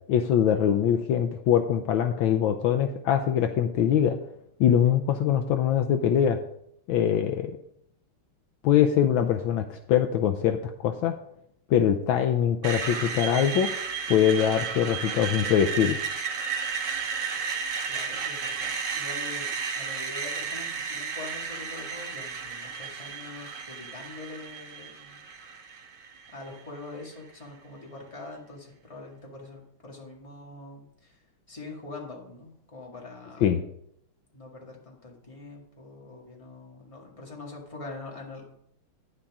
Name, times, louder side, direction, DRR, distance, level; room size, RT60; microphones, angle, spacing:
voice 1, 0.1-4.1 4.6-6.4 6.9-7.6 8.6-10.6 10.8-11.1 11.7-13.7 14.1-16.0 33.4-33.6, left 9 dB, 75° left, 6 dB, 1.3 m, -23 dB
Screech, 12.6-26.6, right 6 dB, 55° right, 1.6 m, -33 dB
voice 2, 17.9-25.2 26.3-31.2 31.5-33.5 34.3-38.5, left 3 dB, 15° left, -2 dB, 1.9 m, -44 dB
10.0 x 9.9 x 3.6 m, 0.74 s
omnidirectional pair, 2.4 m